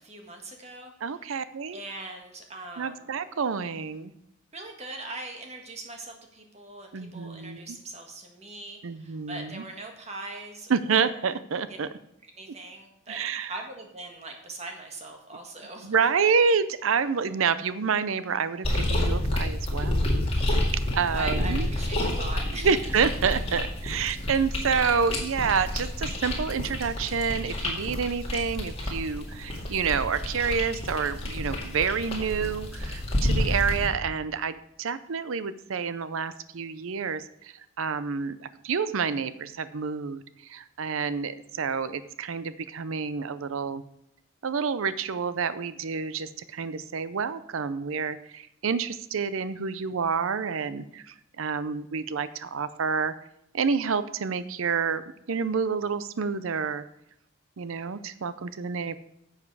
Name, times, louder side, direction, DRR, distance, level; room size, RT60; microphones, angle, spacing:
voice 1, 0.0-0.9 1.7-3.1 4.5-11.2 11.7-11.8 12.3-13.2 13.5-15.9 21.1-22.8, right 2 dB, 30° right, 3 dB, 1.6 m, -41 dB
voice 2, 1.0-1.8 2.8-4.1 6.9-7.6 8.8-9.6 10.7-11.9 13.1-13.5 15.8-20.0 20.3-20.6 20.9-21.7 22.6-43.8 44.4-53.1 53.5-55.0 55.3-56.8 57.6-59.0, right 6 dB, 75° right, 14 dB, 0.5 m, -28 dB
sound 1, 18.6-33.9, left 1 dB, 25° left, 2.2 m, -29 dB
11.0 x 7.3 x 4.7 m, 0.79 s
head